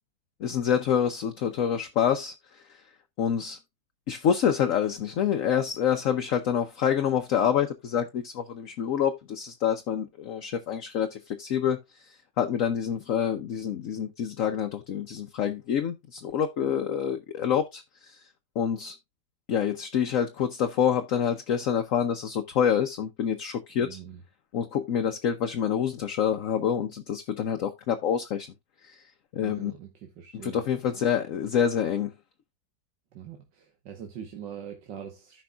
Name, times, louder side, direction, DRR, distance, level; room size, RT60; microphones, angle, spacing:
voice 1, 0.4-2.8 3.2-3.6 4.1-18.3 18.6-19.0 19.5-24.0 24.5-28.5 28.8-29.0 29.3-29.7 30.4-32.1, left 8 dB, 60° left, 1.0 m, -27 dB
voice 2, 23.8-24.2 29.4-30.6 33.1-35.4, right 9 dB, 80° right, 1.8 m, -42 dB
14.5 x 5.3 x 2.2 m
omnidirectional pair, 1.9 m